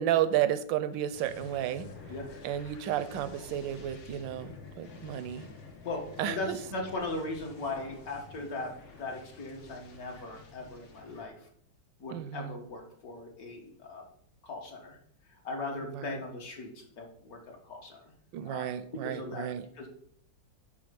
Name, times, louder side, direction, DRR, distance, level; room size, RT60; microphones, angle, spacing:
voice 1, 0.0-1.9 2.4-5.5 6.2-6.6 12.1-12.6 15.9-16.2 18.3-19.6, right 11 dB, 75° right, 12 dB, 1.3 m, -32 dB
sound 1, 1.1-11.3, left 4 dB, 75° left, 2.0 m, -49 dB
voice 2, 2.1-2.6 5.8-11.5 12.0-14.1 14.4-15.0 15.3-17.4 17.6-18.1 18.4-18.7 19.0-19.5 19.8-19.9, left 2 dB, 50° left, 1 dB, 1.9 m, -39 dB
11.0 x 3.7 x 5.2 m, 0.67 s
omnidirectional pair, 2.1 m